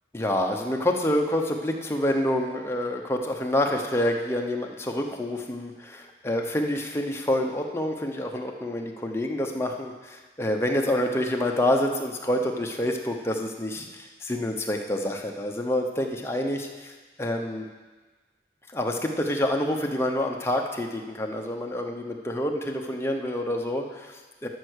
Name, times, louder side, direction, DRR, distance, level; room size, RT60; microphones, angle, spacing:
voice 1, 0.1-17.7 18.7-24.5, left 1 dB, 15° left, 2 dB, 0.8 m, -27 dB
12.5 x 5.6 x 6.4 m, 1.3 s
head